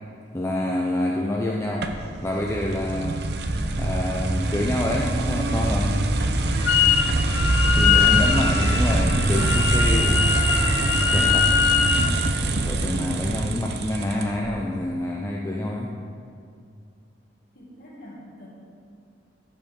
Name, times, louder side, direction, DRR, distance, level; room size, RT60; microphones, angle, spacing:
voice 1, 0.3-1.9 2.2-3.2 3.8-6.0 7.8-10.3 11.1-11.5 12.6-15.9, left 1 dB, 15° left, -1 dB, 0.5 m, -27 dB
sound 1, 1.8-14.5, right 2 dB, 55° right, 0.7 m, -24 dB
sound 2, 6.4-11.9, equal, 15° right, 2.4 m, -41 dB
Wind instrument woodwind instrument, 6.7-7.1 7.3-12.1, left 8 dB, 75° left, 0.6 m, -22 dB
voice 2, 17.6-18.5, left 1 dB, 50° left, -5 dB, 2.0 m, -43 dB
13.0 x 5.7 x 5.2 m, 2.3 s
head